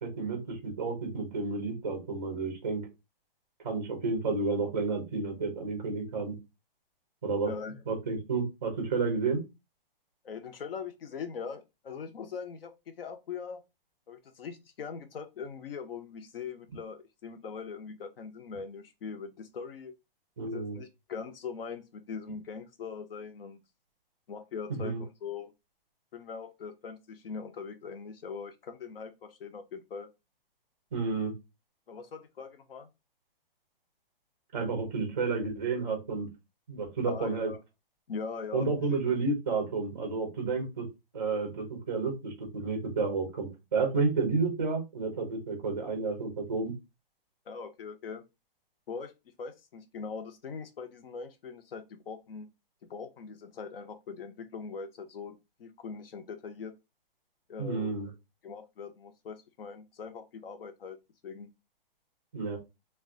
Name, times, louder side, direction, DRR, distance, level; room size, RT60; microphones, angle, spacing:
voice 1, 0.0-2.8 3.6-6.3 7.2-7.5 7.9-9.4 20.4-20.8 24.7-25.0 30.9-31.3 34.5-36.3 36.7-37.5 38.5-40.8 41.1-46.7 57.6-58.1 62.3-62.6, right 4 dB, 15° right, 0.4 m, -31 dB
voice 2, 7.4-7.8 10.2-13.6 14.1-19.9 20.5-23.6 24.3-25.5 26.1-30.1 31.9-32.9 37.1-37.6 38.1-38.7 47.5-48.2 48.9-49.1 49.4-52.5 52.9-56.7 57.5-57.9 58.4-61.0 61.2-61.5, left 5 dB, 75° left, 0.7 m, -41 dB
2.3 x 2.2 x 3.6 m
hypercardioid pair, 170°, 29 cm